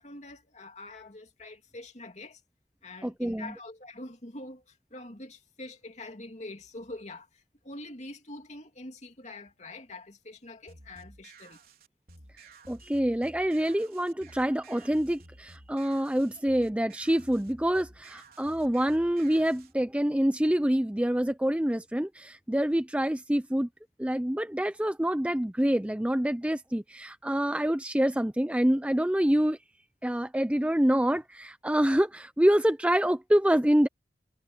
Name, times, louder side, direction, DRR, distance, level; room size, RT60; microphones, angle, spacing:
voice 1, 0.0-2.4 2.8-11.6, left 2 dB, 40° left, 2.6 m, -45 dB
voice 2, 3.0-3.5 12.7-23.7 24.0-29.6 30.0-33.9, equal, 5° right, 0.5 m, -26 dB
sound 1, 10.7-19.7, right 3 dB, 55° right, 4.7 m, -53 dB
head